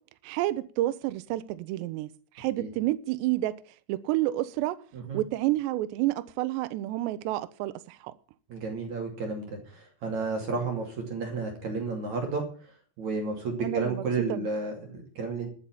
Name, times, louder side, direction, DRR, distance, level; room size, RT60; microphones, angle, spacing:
voice 1, 0.2-2.1 2.4-3.6 3.9-4.8 5.1-8.1 13.6-14.0 14.3-14.5, right 16 dB, 80° right, 2.6 m, -29 dB
voice 2, 8.5-12.4 13.0-15.5, right 4 dB, 45° right, 3.2 m, -32 dB
13.0 x 7.1 x 8.8 m
omnidirectional pair, 5.8 m